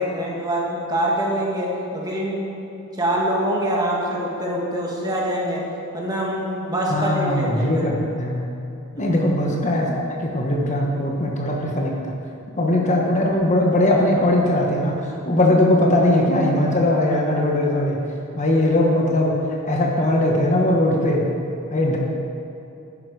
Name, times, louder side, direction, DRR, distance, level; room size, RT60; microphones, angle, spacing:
voice 1, 0.0-2.7 2.9-5.6 5.9-7.9 8.9-9.2, equal, 20° right, -3 dB, 2.0 m, -24 dB
voice 2, 6.9-8.4 9.0-11.9 12.6-18.0 18.3-19.4 19.7-21.3 21.7-22.0, left 1 dB, 35° left, -1 dB, 1.2 m, -20 dB
11.0 x 9.6 x 4.8 m, 2.8 s
head